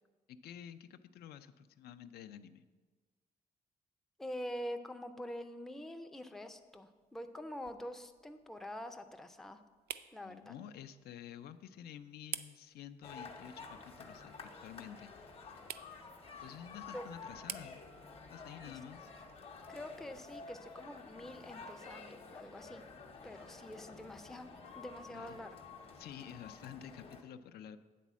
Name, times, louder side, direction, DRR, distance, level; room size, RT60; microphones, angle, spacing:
voice 1, 0.3-2.6 10.2-15.1 16.4-17.8 18.3-19.1 25.1-25.4 26.0-27.8, left 9 dB, 85° left, 11 dB, 0.4 m, -50 dB
voice 2, 4.2-9.6 10.1-10.5 16.9-17.0 18.6-18.8 19.7-22.8 23.2-25.6, equal, ahead, 7 dB, 0.3 m, -46 dB
sound 1, 6.3-21.1, right 11 dB, 90° right, 0.4 m, -53 dB
sound 2, 13.0-27.2, left 4 dB, 40° left, 0.8 m, -51 dB
9.2 x 4.1 x 7.2 m, 1.4 s
cardioid pair, 175°, 16 cm